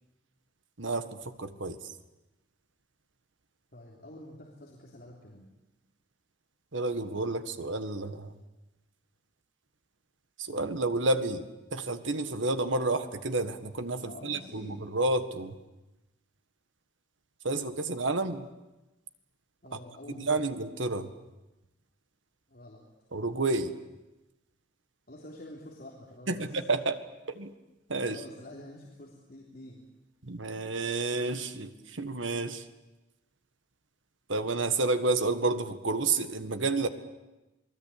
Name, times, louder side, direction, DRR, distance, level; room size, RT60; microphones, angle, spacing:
voice 1, 0.8-1.8 6.7-8.4 10.4-11.5 11.7-15.6 17.4-18.5 19.7-19.8 20.2-21.1 23.1-23.8 26.3-27.0 27.3-27.5 27.9-28.2 30.2-32.7 34.3-36.9, right 3 dB, 85° right, 9 dB, 1.7 m, -30 dB
voice 2, 3.7-5.5 14.0-14.8 19.6-20.3 22.5-22.8 25.1-26.6 28.1-29.8, left 1 dB, 50° left, -3 dB, 3.5 m, -48 dB
28.0 x 20.0 x 8.7 m, 1.0 s
head